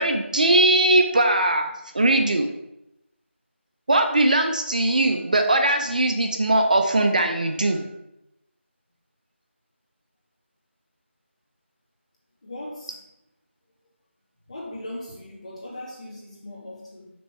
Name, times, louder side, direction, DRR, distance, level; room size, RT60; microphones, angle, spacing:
voice 1, 0.0-1.7 1.9-2.5 3.9-7.8, right 2 dB, 40° right, 5 dB, 0.6 m, -20 dB
voice 2, 12.4-13.0 14.5-17.1, left 1 dB, 30° left, -5 dB, 2.2 m, -38 dB
6.1 x 4.2 x 6.0 m, 0.85 s
figure-of-eight pair, 170°, 7 cm